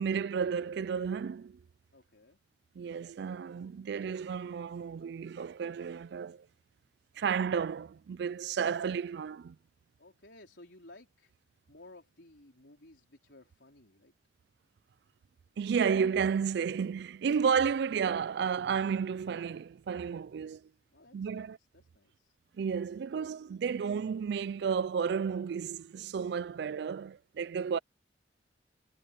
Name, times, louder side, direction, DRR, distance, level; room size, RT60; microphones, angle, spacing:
voice 1, 0.0-1.6 2.8-6.5 7.2-9.6 15.6-20.6 21.1-21.6 22.6-27.8, right 6 dB, 60° right, 0.3 m, -32 dB
voice 2, 1.9-2.4 10.0-14.1 20.9-22.4, left 2 dB, 75° left, 4.4 m, -57 dB
head